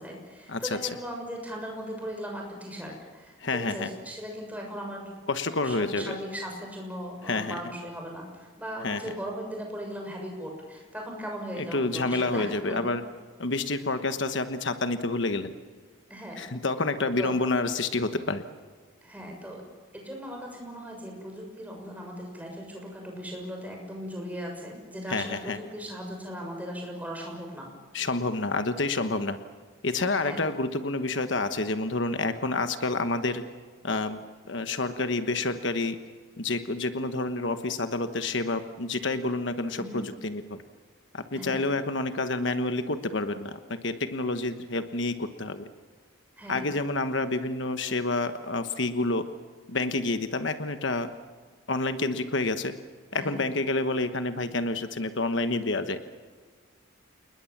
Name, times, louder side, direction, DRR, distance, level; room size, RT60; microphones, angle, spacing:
voice 1, 0.0-5.3 5.6-12.8 16.1-16.5 17.2-17.3 19.0-19.6 19.9-27.7 30.2-30.5 39.7-40.0 41.3-41.6 46.4-46.7 53.1-53.5, equal, 5° right, 1 dB, 6.6 m, -38 dB
voice 2, 3.4-3.9 5.3-6.0 7.2-7.5 8.8-9.0 11.6-13.0 13.4-15.5 16.4-18.4 25.1-25.6 27.9-29.4 29.8-33.4 33.8-34.2 34.5-36.0 36.4-40.6 41.1-45.6 46.5-49.2 49.7-51.1 51.7-52.7 53.1-56.0, left 2 dB, 65° left, 9 dB, 1.2 m, -28 dB
28.5 x 20.5 x 7.4 m, 1.5 s
head